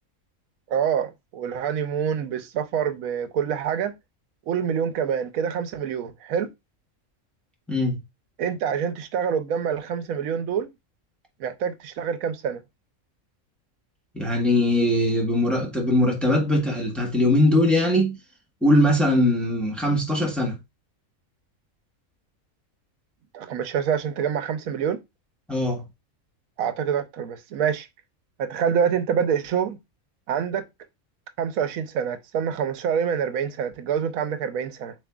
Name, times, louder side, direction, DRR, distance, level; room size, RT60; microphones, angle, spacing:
voice 1, 0.7-3.9 4.5-6.5 8.4-10.7 11.4-12.6 23.3-25.0 26.6-27.9 28.4-29.8 30.3-30.6 31.4-34.9, right 7 dB, 85° right, 1.1 m, -26 dB
voice 2, 7.7-8.0 14.1-18.2 18.6-20.6 25.5-25.8, left 1 dB, ahead, 1.1 m, -21 dB
7.1 x 2.9 x 2.3 m
omnidirectional pair, 1.4 m